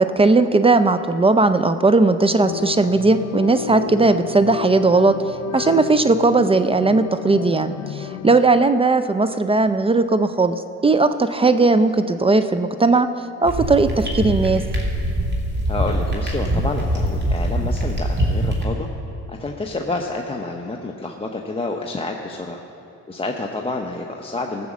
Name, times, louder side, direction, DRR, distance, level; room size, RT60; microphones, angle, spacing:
voice 1, 0.0-5.1 5.5-13.1 13.4-14.6, right 3 dB, 20° right, 11 dB, 0.4 m, -17 dB
sound 1, 2.4-8.4, left 10 dB, 65° left, 0.5 m, -31 dB
sound 2, 13.4-18.6, right 1 dB, 35° right, 2.5 m, -23 dB
voice 2, 15.6-18.9 19.3-22.6 23.1-24.7, left 2 dB, 20° left, 1 dB, 0.8 m, -28 dB
15.5 x 6.1 x 7.2 m, 2.7 s
cardioid pair, 90°, 30 cm